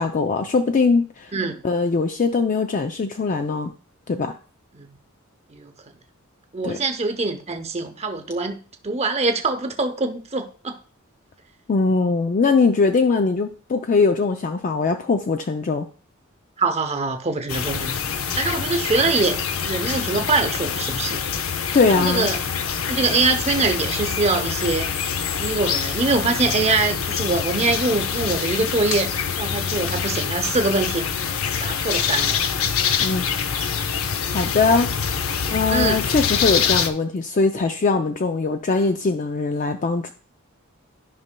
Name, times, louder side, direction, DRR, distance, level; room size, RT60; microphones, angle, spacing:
voice 1, 0.0-1.3 1.6-3.7 4.1-4.4 6.6-6.8 11.7-15.9 21.7-22.3 33.0-33.2 34.3-34.9 35.5-40.1, left 4 dB, 35° left, 0.4 m, -21 dB
voice 2, 6.5-8.6 8.8-10.8 16.6-21.2 21.9-22.4 22.9-24.9 25.4-31.1 31.6-32.4 34.6-34.7 35.7-36.0, right 3 dB, 30° right, 0.8 m, -23 dB
sound 1, 17.5-36.9, left 7 dB, 70° left, 0.6 m, -25 dB
12.5 x 5.5 x 2.2 m
head